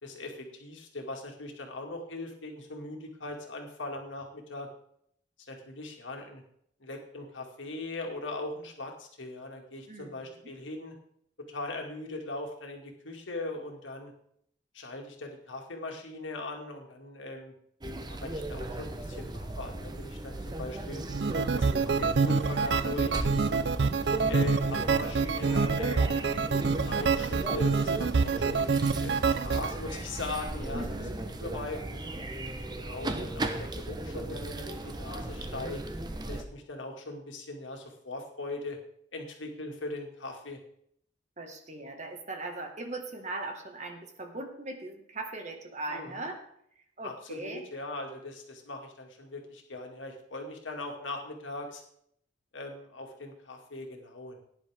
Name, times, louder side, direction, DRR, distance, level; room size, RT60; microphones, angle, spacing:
voice 1, 0.0-4.7 5.4-6.4 6.8-10.9 11.5-14.1 14.7-17.5 18.0-21.0 21.6-23.6 24.3-26.2 26.8-30.8 31.4-32.0 32.7-35.8 36.3-38.8 39.1-40.6 45.9-46.2 47.0-51.8 52.5-54.4, left 2 dB, 80° left, 2 dB, 2.2 m, -40 dB
voice 2, 9.9-10.3 30.7-31.2 41.4-46.4 47.0-47.6, right 2 dB, 40° right, 4 dB, 1.7 m, -39 dB
sound 1, 17.8-36.4, right 1 dB, 20° right, 0.8 m, -37 dB
sound 2, 21.1-29.7, right 4 dB, 60° right, 0.5 m, -27 dB
17.0 x 10.0 x 3.6 m, 0.70 s
head